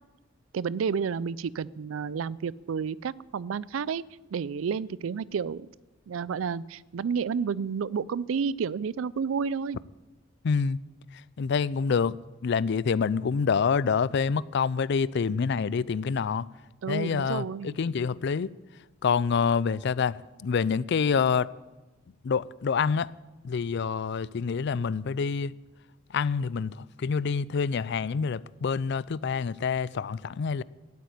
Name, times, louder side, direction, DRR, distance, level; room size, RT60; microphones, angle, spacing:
voice 1, 0.5-4.0 4.3-5.7 6.1-9.8 16.8-17.8, right 6 dB, 85° right, 0.4 m, -30 dB
voice 2, 10.4-10.8 11.4-12.2 12.4-16.5 16.9-18.5 19.0-21.5 22.2-23.1 23.4-25.5 26.1-30.6, left 5 dB, 60° left, 0.4 m, -27 dB
13.0 x 8.4 x 9.4 m
head